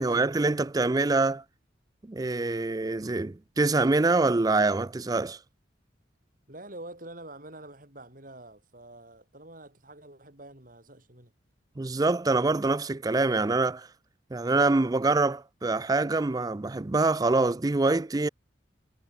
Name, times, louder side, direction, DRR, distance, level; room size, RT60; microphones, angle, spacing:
voice 1, 0.0-1.4 2.1-5.4 11.8-13.9 14.3-18.3, right 3 dB, 20° right, 0.4 m, -25 dB
voice 2, 6.5-11.3, right 1 dB, 45° right, 6.5 m, -46 dB
head